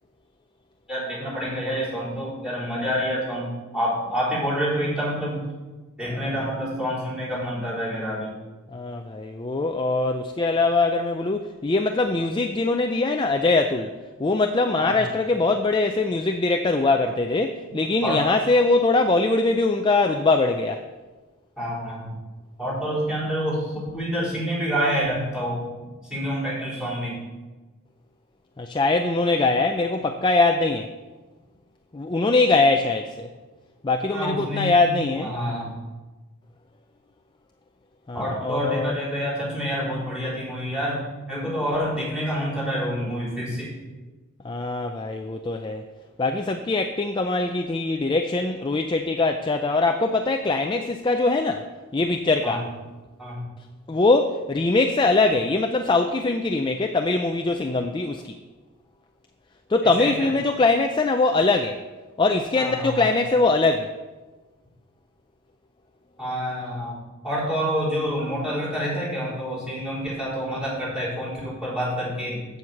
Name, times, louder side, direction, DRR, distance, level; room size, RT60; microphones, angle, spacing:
voice 1, 0.9-5.4 6.0-8.3 14.8-15.0 18.0-18.2 21.6-22.2 22.6-25.6 26.0-27.2 34.1-34.8 35.1-35.8 38.1-43.7 52.4-52.6 53.2-53.4 59.8-60.3 62.5-63.1 66.2-67.0 67.2-72.4, equal, 5° right, -7 dB, 4.1 m, -27 dB
voice 2, 8.7-13.9 14.2-20.8 28.6-30.9 31.9-33.3 33.8-35.3 38.1-38.9 44.4-45.9 46.2-51.7 51.9-52.6 53.9-58.3 59.7-61.8 62.2-63.9, left 3 dB, 20° left, 5 dB, 0.4 m, -22 dB
8.0 x 7.4 x 7.2 m, 1.2 s
head